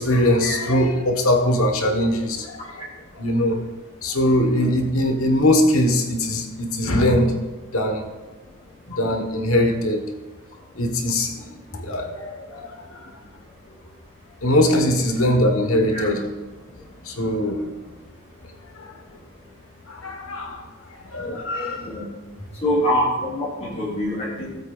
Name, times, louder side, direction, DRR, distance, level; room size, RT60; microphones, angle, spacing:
voice 1, 0.0-2.8 3.2-3.6 4.0-7.3 7.7-8.0 8.9-10.1 10.7-13.1 14.4-16.2 17.0-17.7 18.8-18.9 19.9-20.6 21.1-21.9, left 1 dB, 75° left, 4 dB, 1.5 m, -21 dB
voice 2, 22.6-24.6, equal, 30° left, -4 dB, 3.4 m, -24 dB
18.5 x 8.2 x 2.6 m, 1.2 s
head